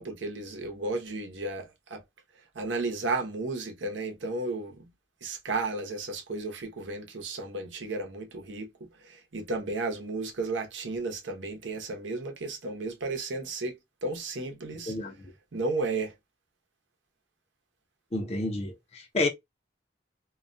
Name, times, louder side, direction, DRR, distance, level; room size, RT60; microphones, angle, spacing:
voice 1, 0.0-2.0 2.5-4.9 5.2-8.7 9.0-14.9 15.5-16.1, right 3 dB, 85° right, 0.8 m, -33 dB
voice 2, 14.9-15.3 18.1-19.3, left 2 dB, 35° left, 0.5 m, -30 dB
2.3 x 2.2 x 2.4 m
head